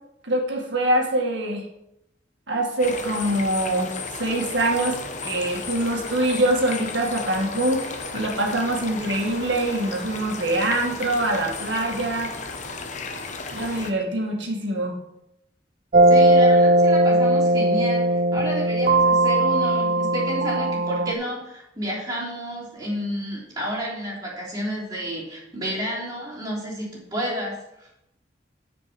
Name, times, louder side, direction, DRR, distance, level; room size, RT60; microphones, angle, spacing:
voice 1, 0.2-1.7 2.5-5.0 5.2-12.3 13.5-15.0, right 1 dB, 70° right, 1 dB, 1.9 m, -24 dB
sound 1, 2.8-13.9, left 4 dB, 40° left, 0.9 m, -34 dB
sound 2, 15.9-21.1, right 1 dB, 45° right, 0.5 m, -18 dB
voice 2, 16.1-27.9, equal, 20° right, -6 dB, 3.2 m, -31 dB
9.1 x 5.2 x 5.1 m, 0.83 s
head